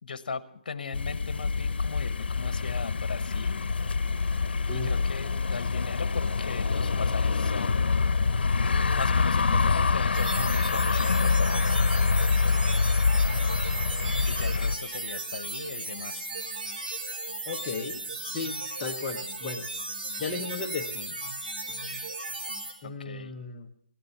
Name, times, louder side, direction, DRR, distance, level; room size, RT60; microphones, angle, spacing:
voice 1, 0.0-3.6 4.7-8.7 9.0-12.6 14.2-16.3 22.8-23.3, left 5 dB, 60° left, 14 dB, 1.1 m, -38 dB
sound 1, 0.9-14.8, left 4 dB, 75° left, 0.8 m, -26 dB
sound 2, 10.1-22.7, right 2 dB, 70° right, 4.4 m, -36 dB
voice 2, 17.4-19.7 20.2-21.2 21.7-21.8 22.8-23.7, left 4 dB, 15° left, -2 dB, 0.8 m, -35 dB
16.5 x 11.0 x 7.2 m, 0.66 s
hypercardioid pair, 175°, 5 cm